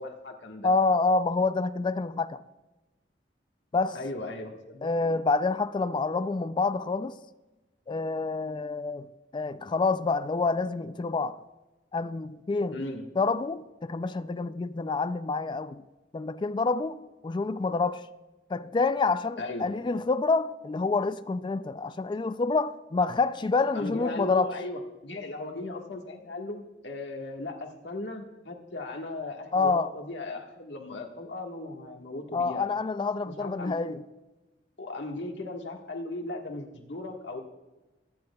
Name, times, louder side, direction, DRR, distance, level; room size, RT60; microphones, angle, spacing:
voice 1, 0.0-0.7 3.9-4.9 12.7-13.1 19.4-19.7 23.7-32.6 33.2-33.8 34.8-37.4, left 2 dB, 90° left, 1.5 m, -37 dB
voice 2, 0.6-2.4 3.7-4.0 4.8-7.2 7.9-9.1 9.3-11.4 11.9-12.8 13.2-15.8 16.1-18.0 18.5-24.5 29.5-29.9 32.3-34.0, left 3 dB, 25° left, 0.3 m, -27 dB
22.5 x 10.5 x 2.3 m
head